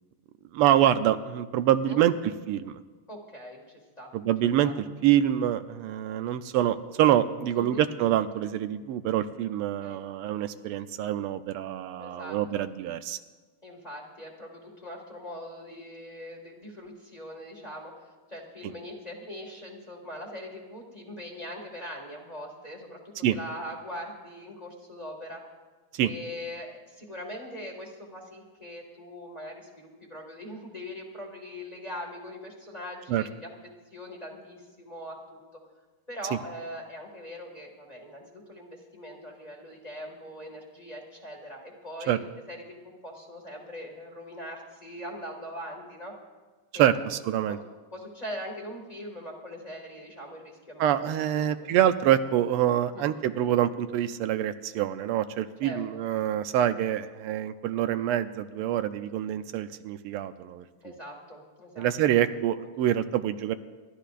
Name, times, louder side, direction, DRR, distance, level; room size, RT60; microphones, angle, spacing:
voice 1, 0.5-2.1 2.5-2.8 4.1-4.7 5.0-13.2 23.2-23.4 25.9-26.1 33.1-33.2 42.1-42.2 46.8-47.6 50.8-60.6 61.8-63.6, right 11 dB, 85° right, 10 dB, 1.6 m, -26 dB
voice 2, 3.1-4.1 4.6-4.7 7.5-7.8 9.8-10.0 12.0-12.7 13.6-17.9 18.3-25.4 26.0-33.5 33.9-35.4 36.1-46.1 46.7-47.1 47.5-47.6 47.9-51.7 52.9-53.2 55.6-55.8 60.8-62.2, equal, 20° left, 0 dB, 1.8 m, -41 dB
29.5 x 12.0 x 2.5 m, 1.3 s
omnidirectional pair, 2.4 m